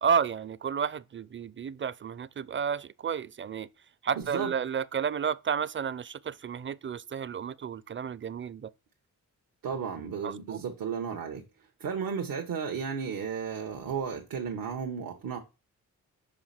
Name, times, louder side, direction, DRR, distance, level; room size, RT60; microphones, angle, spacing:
voice 1, 0.0-3.7 4.0-8.7 10.2-10.6, right 7 dB, 35° right, 0.5 m, -31 dB
voice 2, 4.1-4.5 9.6-11.4 11.8-15.4, right 6 dB, 80° right, 1.3 m, -34 dB
5.2 x 5.0 x 5.8 m
cardioid pair, 50°, 34 cm